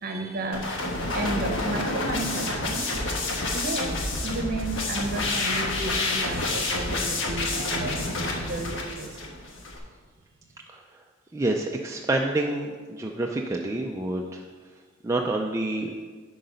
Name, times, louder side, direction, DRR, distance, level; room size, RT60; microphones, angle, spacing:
voice 1, 0.0-2.9 3.5-3.9 4.2-9.3, right 2 dB, 45° right, 4 dB, 1.0 m, -33 dB
sound 1, 0.5-9.8, left 2 dB, 65° left, 1.3 m, -29 dB
voice 2, 11.3-14.4 15.0-15.9, right 2 dB, 15° right, 0 dB, 0.4 m, -28 dB
10.0 x 3.9 x 5.4 m, 1.5 s
head